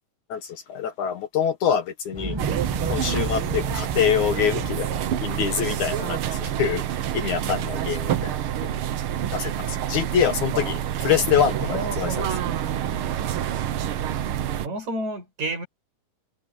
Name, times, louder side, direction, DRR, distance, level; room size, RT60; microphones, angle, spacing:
voice 1, 0.3-2.4 2.9-6.8 7.1-8.3 9.3-10.8 11.0-12.4, left 8 dB, 65° left, 2.6 m, -25 dB
Explosion, 2.1-8.2 8.5-8.6, right 2 dB, 15° right, 0.8 m, -35 dB
sound 1, 2.4-14.7, right 10 dB, 85° right, 1.1 m, -27 dB
voice 2, 11.6-12.5 14.6-15.7, right 2 dB, 55° right, 8.6 m, -31 dB
omnidirectional pair, 3.9 m